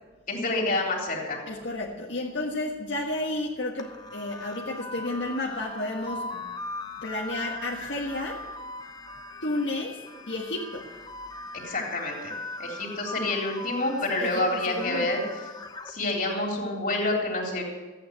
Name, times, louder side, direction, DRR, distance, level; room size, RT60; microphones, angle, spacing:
voice 1, 0.3-1.4 11.6-12.3 12.6-15.2 15.9-17.6, left 2 dB, 45° left, 0 dB, 3.6 m, -28 dB
voice 2, 1.5-6.6 7.0-8.4 9.4-10.9 14.2-15.2, left 2 dB, 75° left, -2 dB, 1.7 m, -32 dB
sound 1, 3.8-15.9, left 2 dB, 20° left, 1.0 m, -39 dB
14.5 x 9.2 x 8.1 m, 1.3 s
head